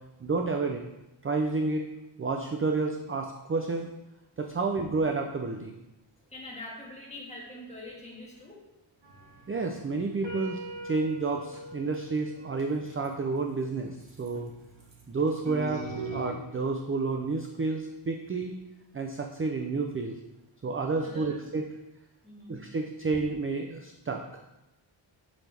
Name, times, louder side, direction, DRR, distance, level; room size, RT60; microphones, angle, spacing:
voice 1, 0.2-0.8 1.2-1.9 2.2-3.9 4.4-5.7 9.5-14.5 15.1-15.8 16.1-18.5 18.9-20.2 20.6-21.7 22.5-24.2, right 3 dB, 25° right, 3 dB, 0.5 m, -30 dB
voice 2, 6.3-8.6 21.0-21.4 22.2-22.5, left 1 dB, 15° left, -4 dB, 1.8 m, -44 dB
sound 1, 9.0-16.3, right 2 dB, 60° right, 1.6 m, -41 dB
6.3 x 5.8 x 3.4 m, 0.95 s
wide cardioid pair, 90°, 49 cm